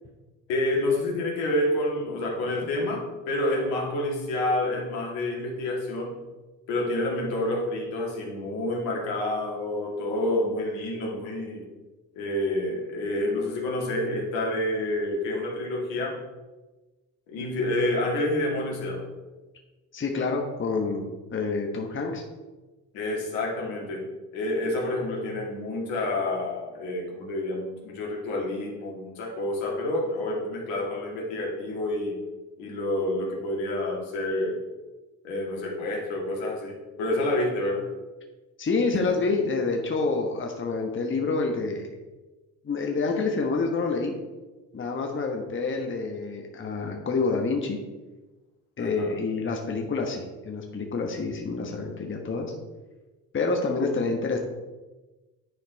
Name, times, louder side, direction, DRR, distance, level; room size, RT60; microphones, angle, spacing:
voice 1, 0.5-6.2 6.7-11.7 12.1-16.2 17.3-19.1 22.9-24.1 24.3-32.2 32.6-34.6 35.2-37.9 48.8-49.2, left 1 dB, 70° left, -2 dB, 2.2 m, -28 dB
voice 2, 19.9-22.2 38.6-41.9 42.6-44.1 44.7-47.8 48.8-52.5 53.3-54.4, left 4 dB, 25° left, 2 dB, 1.2 m, -27 dB
10.5 x 4.3 x 4.0 m, 1.2 s
hypercardioid pair, 65°, 47 cm